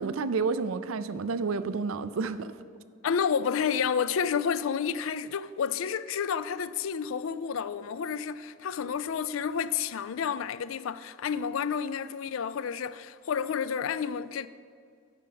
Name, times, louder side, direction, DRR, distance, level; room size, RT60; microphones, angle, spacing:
voice 1, 0.0-2.5, right 4 dB, 80° right, 0.5 m, -30 dB
voice 2, 3.0-14.5, left 7 dB, 70° left, 0.4 m, -30 dB
11.0 x 4.8 x 7.6 m
head